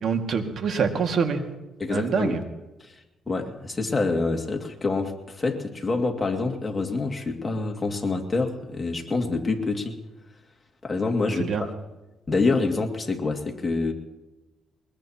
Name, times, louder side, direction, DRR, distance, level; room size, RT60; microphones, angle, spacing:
voice 1, 0.0-1.4 1.9-2.4 11.4-11.6, right 6 dB, 60° right, 5 dB, 1.9 m, -25 dB
voice 2, 1.8-2.4 2.8-10.0 10.8-11.7 12.3-13.9, left 3 dB, 25° left, 2 dB, 2.2 m, -26 dB
22.5 x 21.0 x 2.9 m, 1.1 s
cardioid pair, 90°, 0 cm